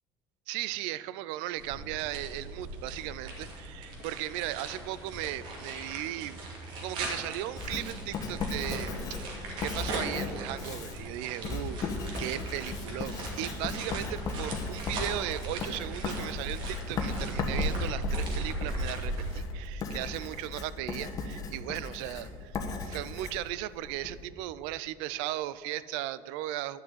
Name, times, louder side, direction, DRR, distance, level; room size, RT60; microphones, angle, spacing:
voice 1, 0.5-6.4 6.8-11.9 12.2-26.8, right 14 dB, 80° right, 18 dB, 0.4 m, -37 dB
sound 1, 1.6-19.4, right 1 dB, 60° right, 2.5 m, -38 dB
Writing, 7.6-24.2, left 3 dB, 40° left, 1.3 m, -37 dB
11.0 x 6.1 x 8.4 m, 2.4 s
cardioid pair, 140°, 9 cm